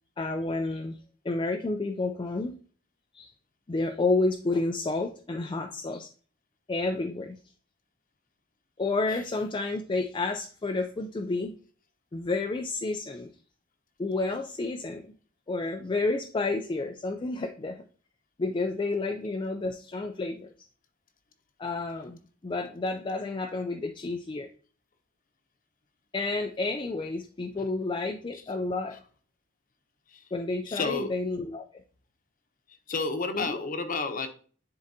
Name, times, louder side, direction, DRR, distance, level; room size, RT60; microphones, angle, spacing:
voice 1, 0.2-1.0 1.2-2.5 3.1-3.3 3.7-6.1 6.7-7.4 8.8-11.5 12.1-13.3 14.0-15.1 15.5-17.8 18.4-20.5 21.6-24.5 26.1-29.0 30.3-31.6 33.3-33.6, left 3 dB, 25° left, 4 dB, 0.4 m, -30 dB
voice 2, 30.7-31.1 32.9-34.3, left 3 dB, 45° left, 7 dB, 0.9 m, -30 dB
10.5 x 3.9 x 2.7 m, 0.42 s
head